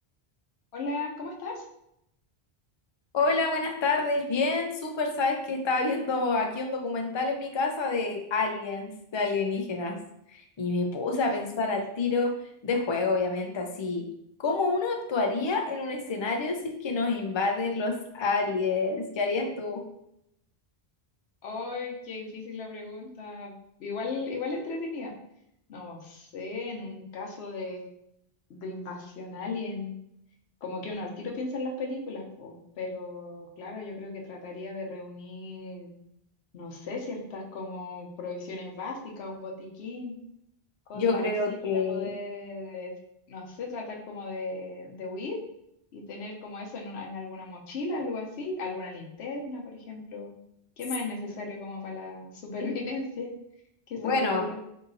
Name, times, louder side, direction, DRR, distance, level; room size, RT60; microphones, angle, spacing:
voice 1, 0.7-1.6 21.4-23.5 23.8-25.1 25.7-27.8 28.5-29.9 30.6-35.9 36.5-40.2 40.9-42.9 43.3-45.4 45.9-50.3 50.8-53.3 53.9-54.6, left 3 dB, 85° left, 1 dB, 1.0 m, -36 dB
voice 2, 3.1-10.0 10.3-12.3 12.6-14.0 14.4-19.8 40.9-42.1 54.0-54.4, left 3 dB, 45° left, 3 dB, 0.3 m, -28 dB
4.0 x 2.7 x 2.6 m, 0.77 s
omnidirectional pair, 1.1 m